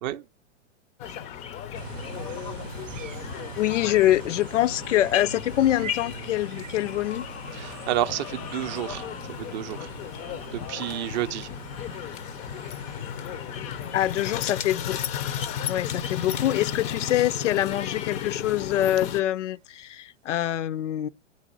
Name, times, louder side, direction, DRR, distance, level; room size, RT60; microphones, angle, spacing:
sound 1, 1.0-19.2, left 9 dB, 20° left, 0.4 m, -34 dB
sound 2, 1.7-19.7, right 7 dB, 90° right, 0.6 m, -44 dB
voice 1, 3.6-7.3 13.9-15.0 15.7-21.1, left 13 dB, 75° left, 0.5 m, -25 dB
voice 2, 7.5-9.9 10.5-11.5, right 13 dB, 40° right, 0.5 m, -30 dB
8.2 x 4.1 x 6.0 m
hypercardioid pair, 110°, 37 cm